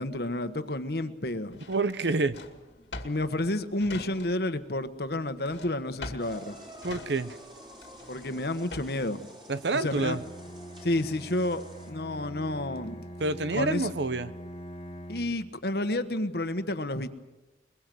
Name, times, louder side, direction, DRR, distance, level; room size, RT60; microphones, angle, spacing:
voice 1, 0.0-1.6 3.0-6.6 8.1-9.3 9.7-10.2 10.8-13.0 13.5-13.9 15.1-17.1, left 1 dB, 60° left, 10 dB, 1.3 m, -30 dB
Drawer open or close, 1.5-4.6 4.9-9.1, left 2 dB, 90° left, 2.2 m, -44 dB
voice 2, 1.7-2.4 6.8-7.4 9.5-10.2 13.2-14.3, right 3 dB, 80° right, 14 dB, 0.9 m, -28 dB
sound 1, 6.2-11.9, equal, 30° right, 4.2 m, -49 dB
Bowed string instrument, 9.8-15.5, equal, 35° left, 1.9 m, -44 dB
22.5 x 21.5 x 7.7 m, 1.1 s
head